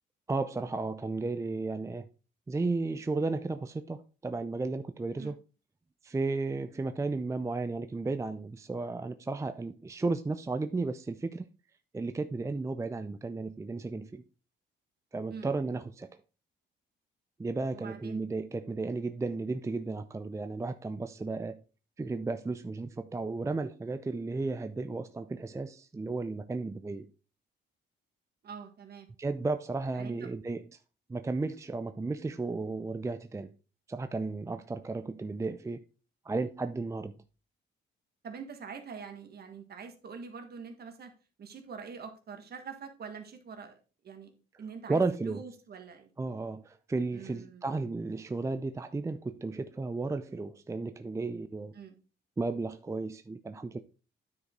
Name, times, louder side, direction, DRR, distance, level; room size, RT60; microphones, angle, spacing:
voice 1, 0.3-2.1 2.5-5.4 6.0-11.4 11.9-14.2 15.1-16.1 17.4-21.6 22.0-27.1 29.2-30.6 31.1-33.5 33.9-35.8 36.2-37.2 44.9-45.4 46.2-51.7 52.4-53.8, right 3 dB, 15° right, 0.5 m, -34 dB
voice 2, 17.7-18.2 28.4-29.1 29.9-30.3 38.2-41.1 41.4-43.8 44.0-44.3 44.6-46.1 47.1-47.7 51.7-52.0, right 6 dB, 55° right, 1.7 m, -45 dB
9.6 x 5.1 x 3.8 m
cardioid pair, 90°, 20 cm